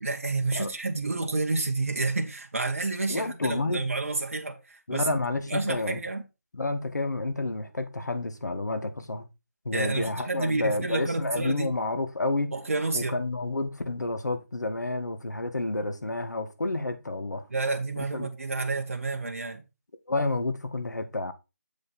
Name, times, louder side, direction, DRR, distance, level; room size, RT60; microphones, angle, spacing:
voice 1, 0.0-5.1 5.5-6.2 9.7-11.7 12.5-13.2 17.5-19.6, right 3 dB, 50° right, 1.4 m, -29 dB
voice 2, 3.1-3.8 4.9-6.0 6.5-9.3 9.6-12.5 12.9-17.5 18.0-18.3 20.1-21.3, left 2 dB, 80° left, 1.6 m, -30 dB
7.8 x 5.2 x 4.1 m
figure-of-eight pair, 175°, 9 cm